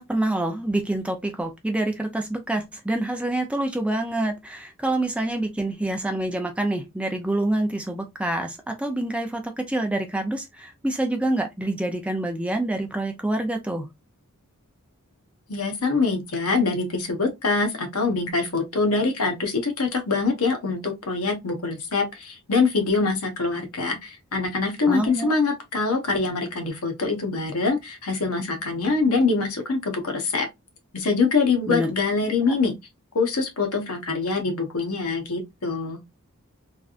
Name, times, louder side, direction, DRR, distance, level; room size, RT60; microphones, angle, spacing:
voice 1, 0.0-13.9 24.9-25.3 31.7-31.9, right 1 dB, 5° right, 0.4 m, -26 dB
voice 2, 15.5-30.5 30.9-32.7 33.1-36.0, left 4 dB, 80° left, 1.0 m, -24 dB
3.3 x 2.5 x 2.4 m
head